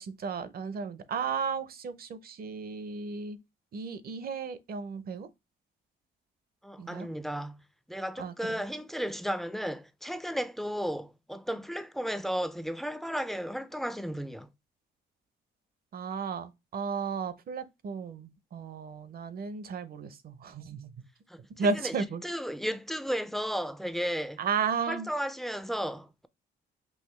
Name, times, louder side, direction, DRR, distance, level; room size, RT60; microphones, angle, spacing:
voice 1, 0.0-3.4 3.7-5.3 6.8-7.1 8.2-8.6 15.9-20.9 21.6-22.2 24.4-25.1, right 5 dB, 50° right, 0.6 m, -34 dB
voice 2, 6.6-14.5 21.3-24.4 24.9-26.3, equal, ahead, 0.3 m, -34 dB
5.6 x 2.6 x 3.1 m
cardioid pair, 90°, 20 cm